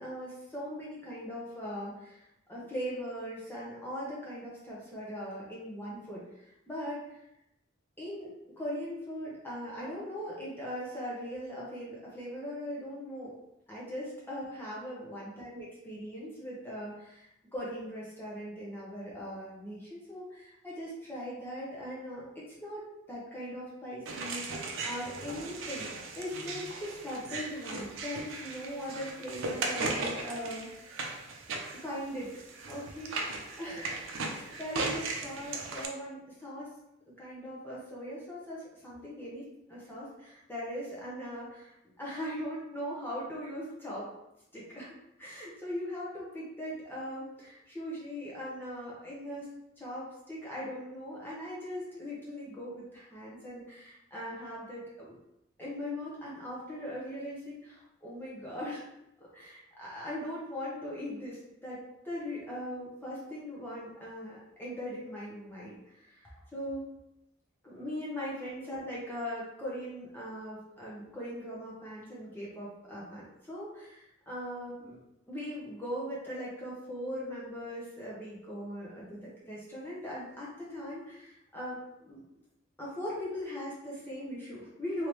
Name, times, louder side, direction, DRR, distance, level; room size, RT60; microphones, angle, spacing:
voice 1, 0.0-7.2 8.0-13.3 13.7-31.0 31.7-32.3 32.7-33.2 33.6-36.7 37.2-44.1 44.5-44.9 45.2-49.5 49.8-55.2 55.6-58.8 59.2-61.8 62.0-66.9 67.6-75.0 75.3-82.2 82.8-85.1, equal, 10° left, -7 dB, 0.7 m, -40 dB
sound 1, 24.0-35.9, right 3 dB, 85° right, 0.5 m, -37 dB
3.2 x 2.7 x 3.0 m, 0.85 s
head